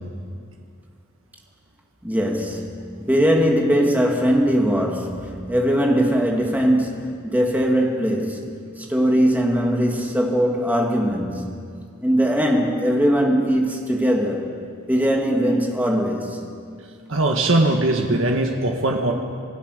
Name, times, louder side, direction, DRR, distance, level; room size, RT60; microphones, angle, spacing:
voice 1, 2.0-11.6 12.0-14.5 14.9-16.4, equal, 10° right, 0 dB, 2.5 m, -20 dB
voice 2, 17.1-19.1, right 2 dB, 65° right, 2 dB, 1.7 m, -20 dB
26.5 x 17.0 x 6.8 m, 2.2 s
head